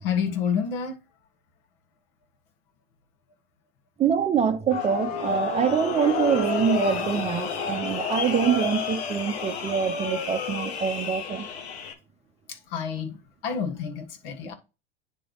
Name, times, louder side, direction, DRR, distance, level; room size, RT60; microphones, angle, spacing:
voice 1, 0.0-1.0 12.5-14.5, left 7 dB, 65° left, 1.5 m, -29 dB
voice 2, 4.0-11.5, right 7 dB, 20° right, 0.7 m, -25 dB
sound 1, 4.7-11.9, left 5 dB, 80° left, 1.3 m, -30 dB
9.8 x 3.3 x 3.9 m
supercardioid pair, 125°, 31 cm